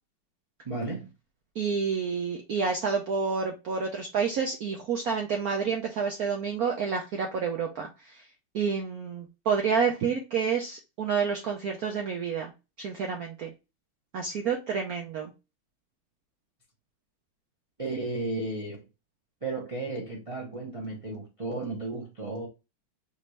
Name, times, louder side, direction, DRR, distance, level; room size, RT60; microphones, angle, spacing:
voice 1, 0.6-1.1 17.8-18.8 19.4-22.5, right 2 dB, 45° right, 0.4 m, -34 dB
voice 2, 1.6-8.3 8.5-12.5 12.8-13.5 14.1-15.3, right 6 dB, 80° right, 0.8 m, -29 dB
5.2 x 2.6 x 3.2 m
omnidirectional pair, 2.4 m